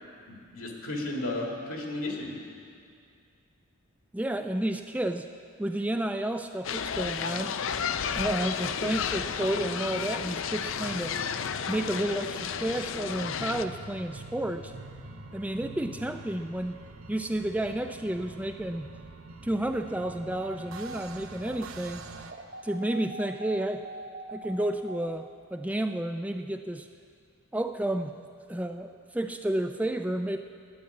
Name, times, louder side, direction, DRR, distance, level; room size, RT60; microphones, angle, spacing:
voice 1, 0.3-2.4, left 1 dB, 85° left, 0 dB, 2.3 m, -34 dB
voice 2, 4.1-5.3 5.6-7.6 8.1-11.2 11.7-14.7 15.3-16.8 17.1-18.9 19.4-22.1 22.6-23.9 24.3-26.9 27.5-28.1 28.5-30.4, right 1 dB, 5° right, 7 dB, 0.3 m, -31 dB
sound 1, 6.6-13.6, left 7 dB, 65° left, 0.4 m, -32 dB
sound 2, 7.7-22.3, right 3 dB, 75° right, 0.8 m, -46 dB
sound 3, 20.0-25.1, right 2 dB, 45° right, 0.8 m, -43 dB
12.0 x 9.4 x 8.5 m, 2.3 s
head